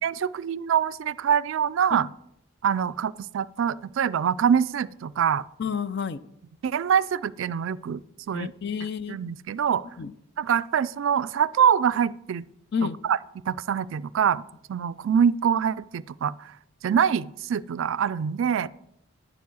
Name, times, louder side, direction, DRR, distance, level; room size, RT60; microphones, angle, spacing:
voice 1, 0.0-2.1 2.6-5.4 6.6-8.5 9.1-9.8 10.4-12.4 13.0-13.2 13.5-14.4 14.7-16.6 16.8-18.7, right 8 dB, 65° right, 17 dB, 0.3 m, -24 dB
voice 2, 5.6-6.2 8.3-9.2 10.0-10.1 12.7-13.0, left 6 dB, 50° left, 15 dB, 0.4 m, -29 dB
10.0 x 7.1 x 6.2 m, 0.79 s
head